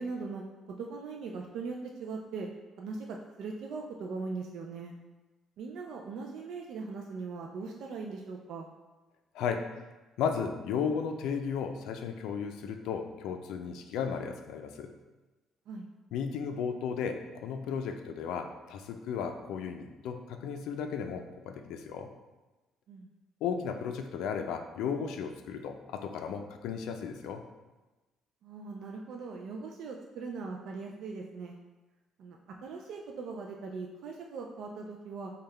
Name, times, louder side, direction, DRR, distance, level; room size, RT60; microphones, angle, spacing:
voice 1, 0.0-2.5 2.8-4.9 5.6-8.7 15.7-15.9 22.9-23.1 28.4-31.6 32.2-35.3, right 4 dB, 60° right, 1 dB, 0.3 m, -40 dB
voice 2, 9.3-9.7 10.2-14.9 16.1-22.1 23.4-27.4, left 6 dB, 80° left, 5 dB, 0.4 m, -35 dB
5.3 x 2.2 x 3.3 m, 1.1 s
cardioid pair, 165°, 0 cm